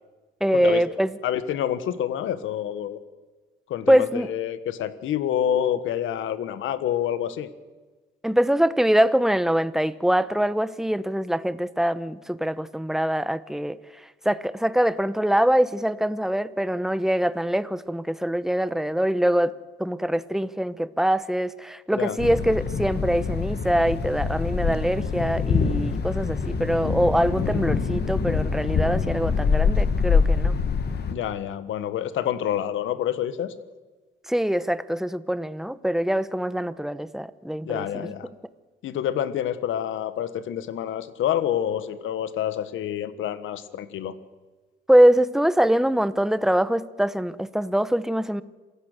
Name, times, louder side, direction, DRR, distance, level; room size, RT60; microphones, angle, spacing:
voice 1, 0.4-1.2 3.9-4.3 8.2-19.5 19.8-30.5 34.3-38.1 44.9-48.4, equal, ahead, 1.0 m, -23 dB
voice 2, 1.2-3.0 3.7-7.5 21.9-22.2 31.1-33.5 37.6-38.3 38.8-44.1, left 10 dB, 80° left, 1.5 m, -27 dB
Thunder, 22.2-31.1, left 5 dB, 55° left, 2.2 m, -25 dB
27.0 x 15.5 x 6.8 m
cardioid pair, 90°, 20 cm